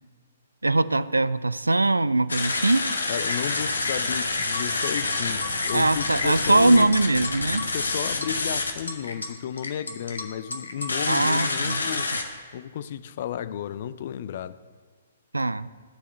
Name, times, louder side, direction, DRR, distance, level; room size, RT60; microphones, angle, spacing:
voice 1, 0.6-2.8 5.7-7.7 11.1-11.8 15.3-15.7, right 2 dB, 85° right, 0.3 m, -21 dB
sound 1, 2.3-12.2, left 3 dB, 75° left, 1.2 m, -28 dB
voice 2, 3.1-6.9 7.5-12.1 12.5-14.6, left 9 dB, 50° left, 0.5 m, -33 dB
12.5 x 4.9 x 7.8 m
figure-of-eight pair, 125°, 0 cm